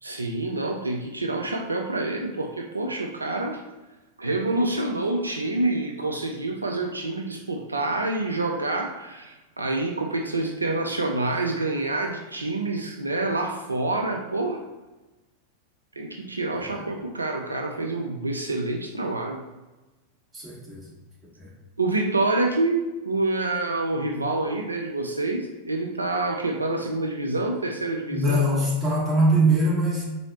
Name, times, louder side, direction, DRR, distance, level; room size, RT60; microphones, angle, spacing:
voice 1, 0.0-3.6 4.2-14.6 16.0-19.4 21.8-28.6, right 2 dB, 80° right, 2 dB, 0.3 m, -27 dB
voice 2, 20.3-20.9 21.4-21.5 28.1-30.0, right 1 dB, 20° right, -5 dB, 1.3 m, -22 dB
4.0 x 2.7 x 2.9 m, 1.1 s
figure-of-eight pair, 90°, 0 cm